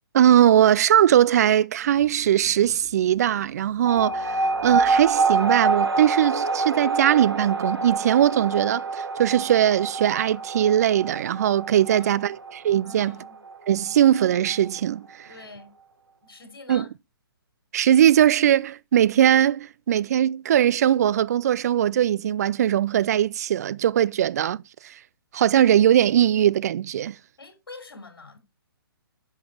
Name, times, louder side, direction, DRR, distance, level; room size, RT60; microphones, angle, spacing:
voice 1, 0.1-13.2 13.7-15.3 16.7-16.8 17.7-25.0 25.3-27.2, right 10 dB, 40° right, 0.5 m, -20 dB
sound 1, 1.9-5.7, right 2 dB, 20° right, 3.5 m, -51 dB
sound 2, 3.9-14.8, right 4 dB, 75° right, 1.3 m, -26 dB
voice 2, 11.9-12.3 12.8-13.4 15.3-15.7 16.2-16.9 27.4-28.4, left 3 dB, 65° left, 4.0 m, -45 dB
11.0 x 6.0 x 4.4 m
figure-of-eight pair, 130°, 13 cm